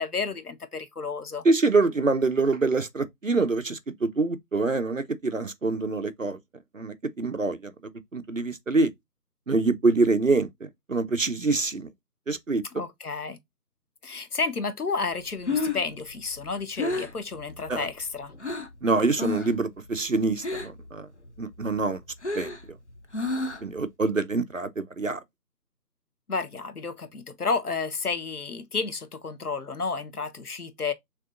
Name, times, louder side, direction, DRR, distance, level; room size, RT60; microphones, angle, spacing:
voice 1, 0.0-1.4 12.7-13.4 14.0-18.3 26.3-30.9, left 4 dB, 65° left, 0.9 m, -31 dB
voice 2, 1.4-6.4 6.7-7.7 8.1-8.9 9.5-10.5 10.9-11.9 12.3-12.6 17.7-17.9 18.8-21.1 21.4-22.0 22.3-22.5 23.6-25.2, right 3 dB, 55° right, 0.5 m, -25 dB
Breathing, 15.2-18.8 19.1-19.6 19.9-20.9 21.2-23.8, left 3 dB, 45° left, 0.6 m, -31 dB
6.6 x 2.9 x 2.4 m
figure-of-eight pair, 165°, 49 cm